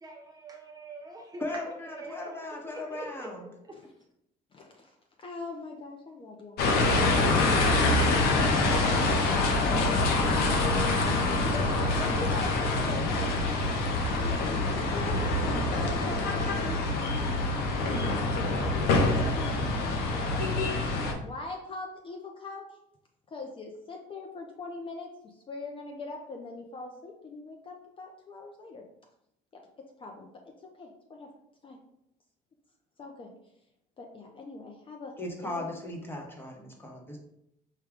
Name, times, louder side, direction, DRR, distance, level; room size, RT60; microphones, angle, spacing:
voice 1, 0.0-2.3 2.7-3.3 3.7-3.8, right 2 dB, 25° right, 1 dB, 0.6 m, -44 dB
voice 2, 1.4-3.5 35.2-37.2, left 2 dB, 15° left, 0 dB, 1.0 m, -37 dB
voice 3, 4.5-10.3 11.5-13.7 14.2-15.4 15.8-17.5 17.8-18.0 19.0-22.8 23.3-28.8 29.8-31.3 31.6-31.8 33.0-33.3 34.0-35.7, left 3 dB, 30° left, 2 dB, 0.5 m, -42 dB
sound 1, 6.6-21.1, left 2 dB, 75° left, 0.7 m, -26 dB
4.8 x 2.2 x 3.6 m, 0.78 s
cardioid pair, 115°, 17 cm